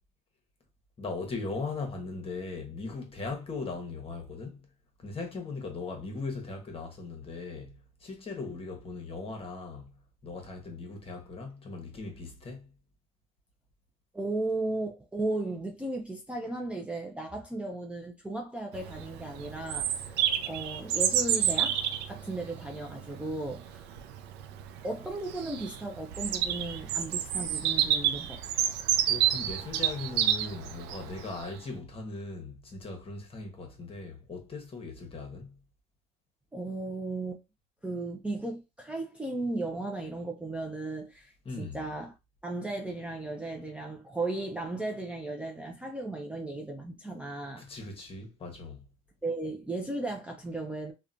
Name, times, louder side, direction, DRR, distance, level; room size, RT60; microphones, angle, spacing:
voice 1, 1.0-4.6 5.0-9.9 10.2-12.7 29.1-35.6 41.4-41.8 47.5-48.8, left 3 dB, 35° left, 1.0 m, -39 dB
voice 2, 14.1-20.2 20.5-23.9 24.8-28.8 36.5-37.4 37.8-42.1 42.4-47.7 49.2-50.9, right 2 dB, 5° right, 0.4 m, -35 dB
Bird vocalization bird call bird song, 18.7-31.5, right 10 dB, 90° right, 0.4 m, -30 dB
2.8 x 2.2 x 2.5 m
cardioid pair, 110°, 17 cm